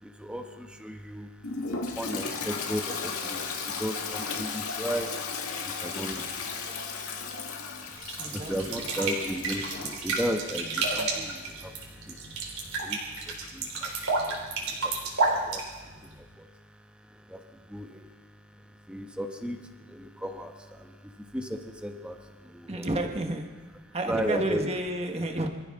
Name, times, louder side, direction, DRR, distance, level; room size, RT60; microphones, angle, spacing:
voice 1, 0.0-1.3 2.0-5.2 5.6-6.6 7.5-7.9 8.3-15.6 16.0-16.5 17.1-18.1 18.7-22.8 24.1-24.6, equal, 5° right, 4 dB, 1.3 m, -36 dB
Toilet flush, 1.4-10.0, left 5 dB, 80° left, 2.0 m, -35 dB
sound 1, 8.0-16.2, right 3 dB, 80° right, 3.8 m, -31 dB
voice 2, 8.2-8.8 22.7-23.5 23.9-25.5, right 1 dB, 30° right, 4 dB, 1.5 m, -31 dB
25.0 x 14.5 x 3.8 m, 1.3 s
head